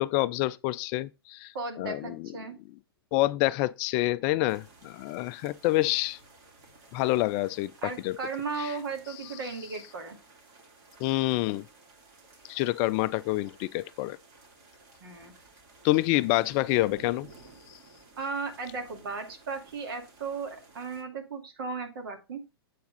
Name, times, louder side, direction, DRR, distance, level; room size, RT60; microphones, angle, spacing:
voice 1, 0.0-1.5 1.8-2.3 3.1-6.2 6.9-8.2 8.6-8.7 11.0-11.7 12.4-14.2 15.8-17.3 17.7-17.8, left 17 dB, 35° left, 0.4 m, -27 dB
voice 2, 1.5-2.5 7.8-10.2 15.0-15.3 18.2-22.4, right 4 dB, 65° right, 2.5 m, -36 dB
sound 1, 4.5-21.0, right 3 dB, 45° right, 2.9 m, -55 dB
8.2 x 4.7 x 5.3 m
figure-of-eight pair, 110°, 13 cm